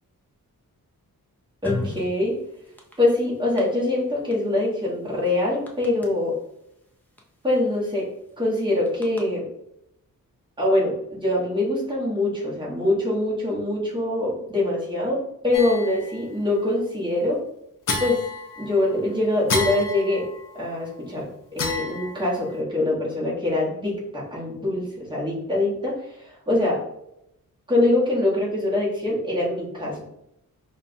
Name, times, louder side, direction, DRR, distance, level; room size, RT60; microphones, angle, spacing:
sound 1, 1.6-2.1 2.6-2.9 3.6-3.7 4.3-4.4 4.6-4.7 5.3-5.4 5.7-6.1 7.2-7.3 7.5-7.8 8.9-9.2, left 2 dB, 5° left, 0.4 m, -31 dB
voice 1, 1.6-2.4 3.0-6.4 7.4-8.1 8.4-9.5 10.6-17.4 18.0-18.2 18.6-20.3 20.5-26.8 27.7-30.0, left 2 dB, 15° right, -6 dB, 1.1 m, -24 dB
sound 2, 15.5-16.3 17.9-18.9 19.5-20.6 21.6-22.5, left 3 dB, 60° left, 0.6 m, -30 dB
5.4 x 2.2 x 2.5 m, 0.81 s
wide cardioid pair, 175°, 36 cm